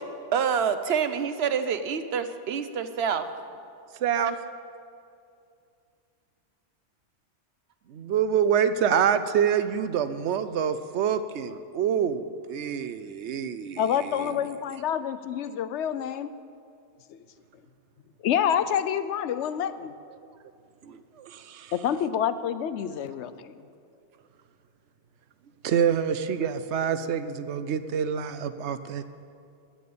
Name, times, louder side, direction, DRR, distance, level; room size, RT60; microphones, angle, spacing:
voice 1, 0.3-3.3 20.8-21.0 21.9-22.0, right 7 dB, 70° right, 10 dB, 1.0 m, -27 dB
voice 2, 4.0-4.3 7.9-14.4 20.8-20.9 21.2-21.7 25.6-29.0, right 8 dB, 90° right, 12 dB, 1.0 m, -26 dB
voice 3, 13.8-16.3 18.2-19.9 21.7-23.5, left 9 dB, 85° left, 13 dB, 0.9 m, -27 dB
10.5 x 8.9 x 8.6 m, 2.4 s
omnidirectional pair, 1.1 m